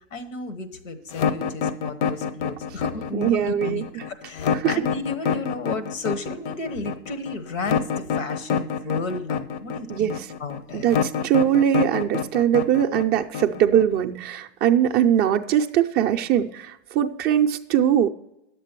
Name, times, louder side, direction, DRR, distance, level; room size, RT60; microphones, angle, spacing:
voice 1, 0.1-10.9, left 3 dB, 85° left, 10 dB, 1.3 m, -33 dB
sound 1, 1.1-14.0, left 7 dB, 65° left, 0.8 m, -26 dB
voice 2, 3.1-3.8 4.5-4.8 9.9-10.2 10.7-18.1, right 10 dB, 25° right, 5 dB, 0.4 m, -21 dB
10.0 x 7.5 x 4.4 m, 0.85 s
hypercardioid pair, 115°, 38 cm